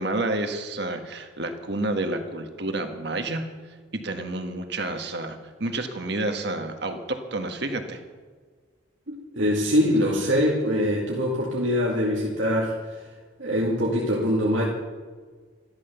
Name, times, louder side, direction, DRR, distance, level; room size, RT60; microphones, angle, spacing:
voice 1, 0.0-3.4 4.0-8.0, right 2 dB, 55° right, 6 dB, 1.6 m, -29 dB
voice 2, 9.1-13.0 13.4-14.6, equal, 75° right, -4 dB, 2.4 m, -23 dB
13.5 x 13.0 x 7.0 m, 1.5 s
head